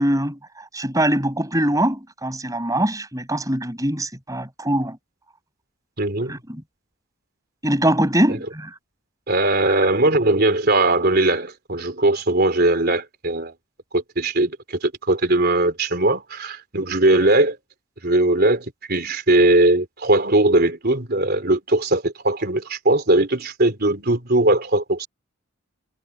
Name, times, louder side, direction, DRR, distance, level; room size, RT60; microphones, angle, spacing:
voice 1, 0.0-5.0 6.3-6.6 7.6-8.7 9.6-9.8, right 1 dB, 15° right, 6.9 m, -23 dB
voice 2, 6.0-6.3 9.3-13.5 13.9-17.6 18.0-25.1, right 2 dB, 45° right, 3.8 m, -19 dB
head